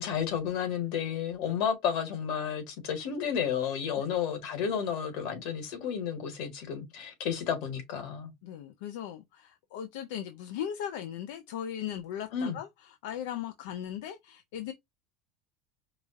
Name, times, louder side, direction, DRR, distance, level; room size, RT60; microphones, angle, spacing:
voice 1, 0.0-8.3 12.3-12.6, left 8 dB, 55° left, 1.6 m, -32 dB
voice 2, 8.4-14.7, left 10 dB, 80° left, 0.5 m, -38 dB
4.8 x 2.4 x 2.5 m
cardioid pair, 175°, 0 cm